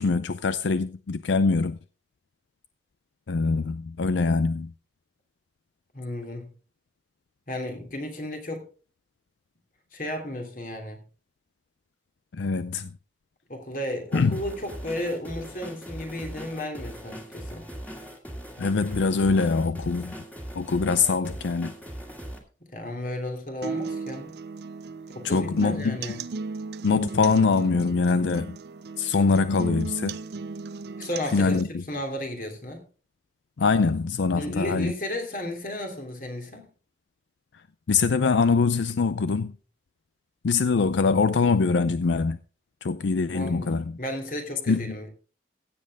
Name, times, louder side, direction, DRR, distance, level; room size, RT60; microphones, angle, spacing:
voice 1, 0.0-1.8 3.3-4.7 12.3-12.9 14.1-14.4 18.6-20.1 20.5-21.7 25.2-26.0 26.8-28.6 29.0-30.2 31.3-31.8 33.6-34.9 37.9-39.5 40.4-42.4 42.8-43.8 44.7-44.8, left 4 dB, 85° left, 0.5 m, -23 dB
voice 2, 5.9-6.5 7.5-8.6 9.9-11.0 13.5-17.7 22.7-24.3 25.1-26.2 31.0-31.6 31.9-32.8 34.3-36.7 43.3-45.1, left 1 dB, 50° left, 2.9 m, -33 dB
sound 1, 14.1-22.4, equal, 10° left, 2.1 m, -40 dB
sound 2, 23.6-31.6, right 4 dB, 65° right, 0.5 m, -36 dB
16.0 x 7.7 x 3.6 m
head